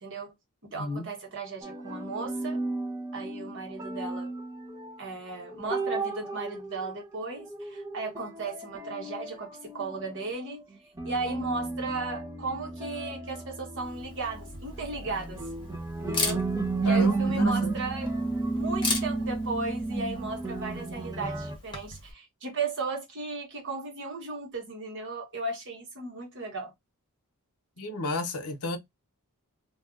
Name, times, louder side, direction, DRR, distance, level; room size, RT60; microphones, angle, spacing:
voice 1, 0.0-0.3 0.7-2.6 3.1-4.3 5.0-10.6 11.0-15.4 16.0-16.4 16.8-18.1 18.5-26.7, right 3 dB, 60° right, 1.3 m, -35 dB
voice 2, 0.7-1.1 16.8-17.8 27.8-28.8, left 2 dB, 80° left, 0.8 m, -33 dB
sound 1, 1.6-5.0 5.3-10.2 10.5-10.6 11.0-21.5, right 3 dB, 15° right, 0.6 m, -32 dB
Camera, 13.8-22.1, left 3 dB, 20° left, 1.0 m, -38 dB
2.6 x 2.4 x 3.6 m
head